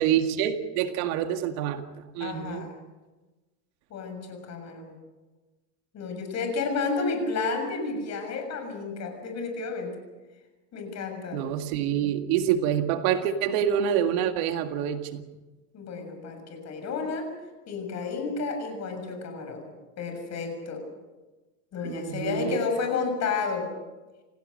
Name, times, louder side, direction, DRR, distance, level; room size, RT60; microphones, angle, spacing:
voice 1, 0.0-1.8 2.1-2.6 11.3-15.2 21.8-22.6, right 9 dB, 60° right, 7 dB, 2.0 m, -26 dB
voice 2, 2.2-2.7 3.9-5.0 5.9-9.9 10.7-11.4 15.7-17.3 17.7-20.8 21.7-23.7, left 4 dB, 35° left, 5 dB, 6.7 m, -31 dB
28.5 x 17.0 x 6.5 m, 1.2 s
supercardioid pair, 140°, 48 cm